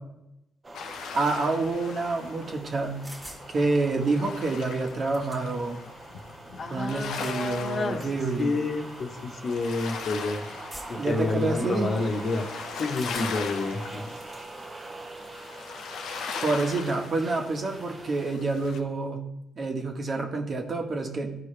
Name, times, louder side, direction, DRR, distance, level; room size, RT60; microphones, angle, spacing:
sound 1, 0.6-18.3, right 2 dB, 30° right, 0.9 m, -44 dB
sound 2, 0.7-18.8, left 6 dB, 85° left, 0.8 m, -40 dB
voice 1, 1.1-3.0 3.5-5.8 6.7-8.6 10.9-11.9 16.4-19.2 19.6-21.3, right 3 dB, 45° right, 3 dB, 1.4 m, -28 dB
sound 3, 3.0-3.5 4.5-4.6 4.9-5.7 6.9-7.4 8.0-8.1 8.9-9.1 10.7-11.1 12.9-13.5 13.9-14.4, right 1 dB, 15° right, 1.5 m, -45 dB
voice 2, 6.6-10.4 10.9-14.1, left 3 dB, 55° left, 3 dB, 1.2 m, -30 dB
13.5 x 4.9 x 3.3 m, 0.85 s
cardioid pair, 90°, 0 cm